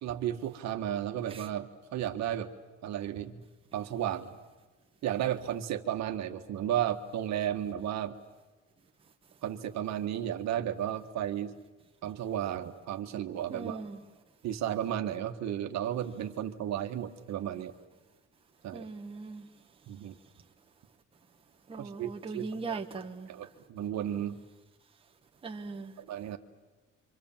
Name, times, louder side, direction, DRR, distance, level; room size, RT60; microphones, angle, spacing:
voice 1, 0.0-2.5 2.8-3.4 3.7-4.3 5.0-8.1 9.4-11.6 12.0-13.8 14.4-17.7 18.6-18.9 19.9-20.2 21.8-22.8 23.3-24.4 26.0-26.4, right 10 dB, 60° right, 6 dB, 1.7 m, -33 dB
voice 2, 13.5-13.9 18.7-19.4 21.7-23.3 25.4-25.9, right 4 dB, 20° right, 2 dB, 1.4 m, -39 dB
29.5 x 25.5 x 7.5 m, 1.2 s
cardioid pair, 160°, 30 cm